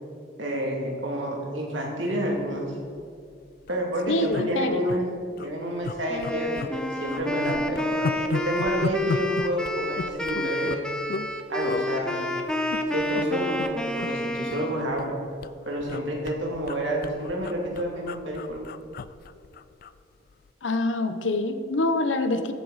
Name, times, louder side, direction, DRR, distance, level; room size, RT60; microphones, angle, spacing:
voice 1, 0.4-2.8 3.7-5.1 5.4-10.8 11.5-12.3 12.9-15.2 15.7-18.6, right 1 dB, 90° right, -1 dB, 2.5 m, -29 dB
sound 1, 2.9-3.0 3.3-3.4 3.6-3.8 4.3-5.0 5.3-5.5 5.8-6.8 7.1-11.3 11.6-11.9 12.5-13.2 13.5-13.7 14.0-15.1 15.4-20.0 20.3-20.5, left 4 dB, 50° left, 0.3 m, -34 dB
voice 2, 4.1-4.9 20.6-22.5, left 2 dB, 85° left, 9 dB, 0.8 m, -25 dB
Wind instrument woodwind instrument, 6.1-14.9, left 1 dB, 5° left, 0.6 m, -29 dB
14.0 x 8.2 x 4.1 m, 2.3 s
head